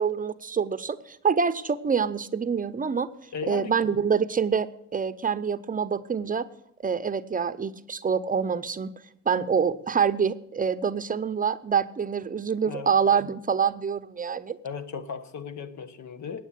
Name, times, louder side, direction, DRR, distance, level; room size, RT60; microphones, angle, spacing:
voice 1, 0.0-3.1 3.5-4.7 4.9-6.4 6.8-8.9 9.3-14.6, right 6 dB, 25° right, 11 dB, 0.7 m, -26 dB
voice 2, 3.3-3.7 12.6-12.9 14.6-16.4, left 6 dB, 65° left, 12 dB, 1.2 m, -36 dB
9.4 x 8.3 x 8.3 m, 0.78 s
cardioid pair, 90°, 30 cm